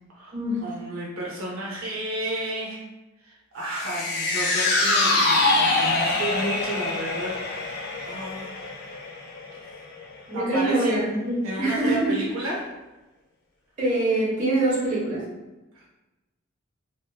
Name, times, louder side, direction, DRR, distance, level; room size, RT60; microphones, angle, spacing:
voice 1, 0.6-2.8 3.2-8.7 9.6-9.8 10.3-11.0 11.4-12.7 15.7-15.9, right 1 dB, 85° right, -4 dB, 0.6 m, -32 dB
sound 1, 3.7-10.1 10.5-10.6, left 2 dB, 55° left, 0.5 m, -25 dB
voice 2, 10.3-12.2 13.8-15.2, right 2 dB, 40° right, -7 dB, 1.2 m, -24 dB
3.5 x 2.7 x 2.3 m, 1.1 s
head